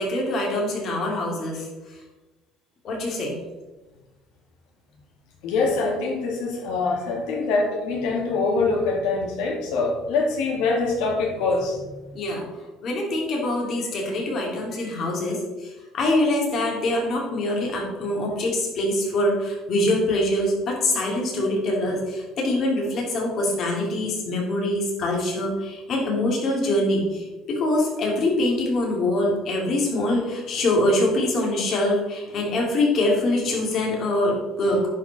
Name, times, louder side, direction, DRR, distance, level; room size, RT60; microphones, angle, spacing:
voice 1, 0.0-1.7 2.8-3.3 12.1-12.5 12.8-34.9, left 1 dB, 45° left, -1 dB, 2.8 m, -24 dB
voice 2, 5.4-12.0, left 3 dB, 80° left, 1 dB, 2.2 m, -24 dB
10.0 x 4.9 x 4.2 m, 1.2 s
cardioid pair, 125°, 0 cm